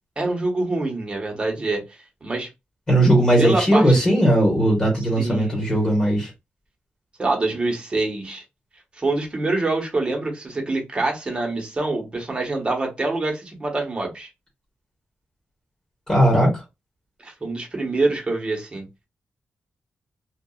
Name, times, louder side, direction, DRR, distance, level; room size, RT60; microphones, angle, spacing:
voice 1, 0.2-2.5 3.4-4.0 5.2-5.5 7.2-8.4 8.9-14.3 17.2-18.8, right 2 dB, 25° right, 1.0 m, -25 dB
voice 2, 2.9-6.3 16.1-16.6, right 1 dB, 20° left, 1.3 m, -18 dB
2.8 x 2.3 x 2.3 m
wide cardioid pair, 125°, 4 cm